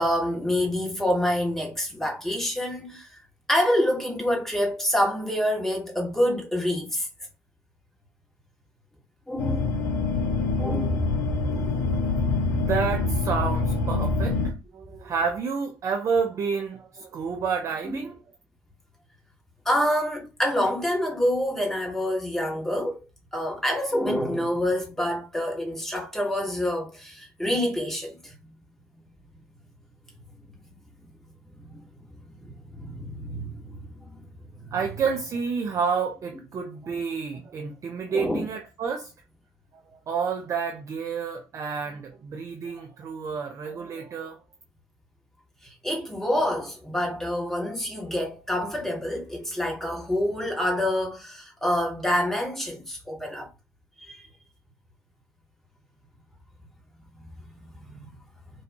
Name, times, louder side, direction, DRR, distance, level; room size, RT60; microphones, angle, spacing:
voice 1, 0.0-3.2 3.5-7.1 9.3-9.8 10.6-11.0 17.9-18.0 19.6-23.0 23.3-28.3 30.4-30.5 31.0-31.1 31.5-31.8 32.3-34.7 38.1-38.5 45.6-53.5 54.0-54.3 57.7-58.1, left 1 dB, 5° left, 1.0 m, -27 dB
sound 1, 9.4-14.5, left 3 dB, 65° left, 0.5 m, -25 dB
voice 2, 12.5-18.2 34.7-39.1 39.7-44.4, right 6 dB, 35° right, 0.3 m, -29 dB
2.3 x 2.3 x 2.6 m
figure-of-eight pair, 50°, 10 cm